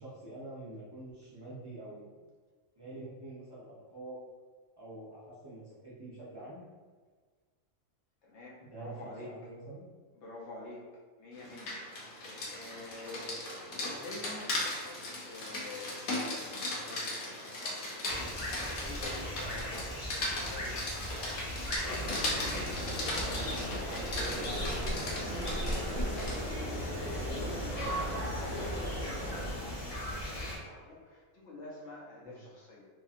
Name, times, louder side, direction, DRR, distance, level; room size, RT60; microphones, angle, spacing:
voice 1, 0.0-2.1 2.8-4.2 4.8-6.6 8.7-8.9 9.2-9.8 19.4-19.5 32.2-32.4, right 2 dB, 30° right, -9 dB, 0.4 m, -46 dB
voice 2, 8.2-9.4 10.1-10.9 11.2-16.5 16.8-21.8 22.2-24.9 25.6-32.9, left 2 dB, 65° left, -4 dB, 0.8 m, -49 dB
Rain, 11.4-26.5, left 1 dB, 85° left, 1.1 m, -38 dB
sound 1, 18.1-30.6, left 1 dB, 45° left, 0.4 m, -40 dB
sound 2, 21.8-29.5, equal, 30° left, 0.9 m, -36 dB
2.7 x 2.6 x 2.4 m, 1.5 s
omnidirectional pair, 1.4 m